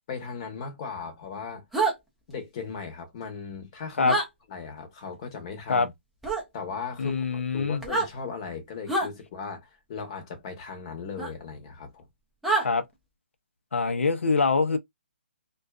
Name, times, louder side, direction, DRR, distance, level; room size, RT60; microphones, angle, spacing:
voice 1, 0.1-1.6 2.3-4.2 4.5-5.9 6.5-12.1, left 5 dB, 25° left, 0.8 m, -37 dB
sound 1, 1.7-1.9 4.1-4.3 6.2-6.4 7.8-8.1 8.9-9.1 11.2-11.3 12.4-12.7, right 2 dB, ahead, 0.4 m, -25 dB
voice 2, 7.0-7.8 12.6-12.8 13.7-14.8, left 4 dB, 85° left, 0.5 m, -24 dB
2.4 x 2.3 x 2.3 m
hypercardioid pair, 165°, 7 cm